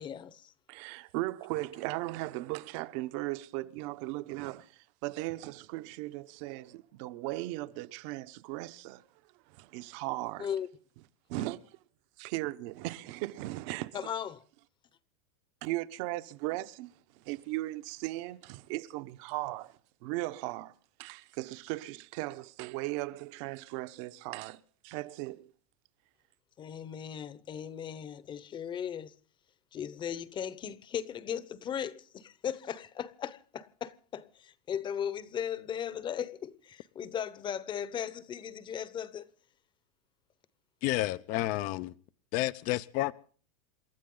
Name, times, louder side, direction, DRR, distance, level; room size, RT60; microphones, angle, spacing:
voice 1, 0.0-0.5 10.4-10.7 13.9-14.4 26.6-29.1 29.7-39.3, left 8 dB, 25° left, 1.0 m, -37 dB
voice 2, 0.7-9.1 9.5-10.5 11.3-11.6 12.2-13.9 15.6-20.7 21.0-25.5, right 18 dB, 55° right, 1.1 m, -37 dB
voice 3, 40.8-41.9 42.3-43.1, left 16 dB, 45° left, 0.7 m, -30 dB
28.0 x 13.0 x 3.9 m
supercardioid pair, 140°, 19 cm